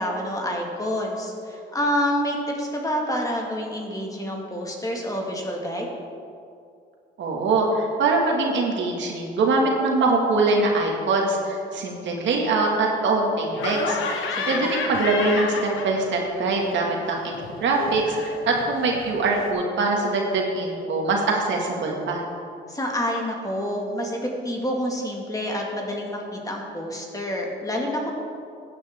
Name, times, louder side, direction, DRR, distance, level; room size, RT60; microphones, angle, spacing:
voice 1, 0.0-5.9 14.3-14.7 22.7-28.1, equal, 15° left, 0 dB, 2.0 m, -28 dB
voice 2, 7.2-14.0 14.5-22.2, right 3 dB, 70° right, 0 dB, 2.1 m, -23 dB
Laughter, 13.5-16.3 16.6-19.5, left 4 dB, 80° left, 1.3 m, -31 dB
15.0 x 9.6 x 3.7 m, 2.4 s
cardioid pair, 90°, 20 cm